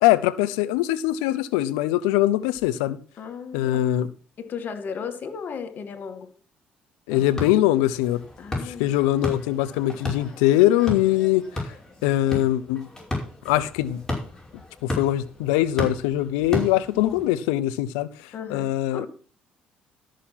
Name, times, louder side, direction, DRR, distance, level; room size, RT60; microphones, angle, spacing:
voice 1, 0.0-3.0 3.5-4.1 7.1-8.2 8.6-11.4 12.0-12.9 13.4-14.0 14.8-19.1, left 14 dB, 90° left, 0.7 m, -22 dB
voice 2, 3.2-3.9 4.4-6.3 8.4-8.9 18.3-19.1, left 6 dB, 55° left, 1.9 m, -35 dB
sound 1, 7.1-17.3, left 2 dB, 15° left, 5.3 m, -34 dB
13.0 x 6.5 x 5.8 m
supercardioid pair, 65°, 4 cm